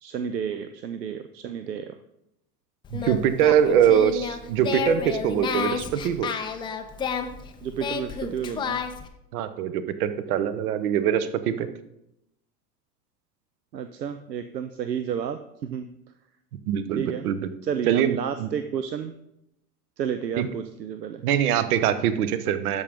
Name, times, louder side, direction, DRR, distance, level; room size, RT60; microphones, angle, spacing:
voice 1, 0.0-1.9 7.6-8.8 13.7-15.9 16.9-17.2 17.6-19.1 20.0-21.2, right 8 dB, 90° right, 10 dB, 0.6 m, -31 dB
Singing, 2.8-9.1, left 7 dB, 10° left, 0.4 m, -31 dB
voice 2, 2.9-6.3 9.3-11.7 16.7-17.4 17.9-18.5 20.4-20.5 21.2-22.8, right 9 dB, 60° right, 12 dB, 0.9 m, -23 dB
13.0 x 5.3 x 3.5 m, 0.84 s
figure-of-eight pair, 90°, 49 cm